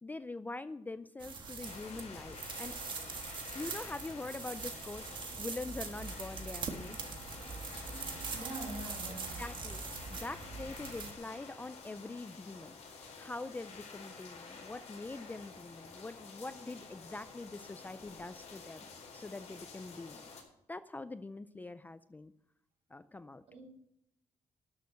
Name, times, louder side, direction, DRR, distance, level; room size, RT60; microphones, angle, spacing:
voice 1, 0.0-2.7 3.5-7.0 9.4-9.8 10.1-12.8 13.2-20.2 20.7-22.3 22.9-23.4, left 2 dB, 15° left, 13 dB, 0.4 m, -44 dB
sound 1, 1.2-11.1, right 5 dB, 40° right, 1.5 m, -43 dB
sound 2, 1.6-20.4, left 4 dB, 65° left, 4.3 m, -50 dB
voice 2, 8.3-9.4 23.5-23.6, right 2 dB, 60° right, 0 dB, 5.4 m, -44 dB
12.5 x 6.7 x 6.8 m, 0.78 s
cardioid pair, 155°, 12 cm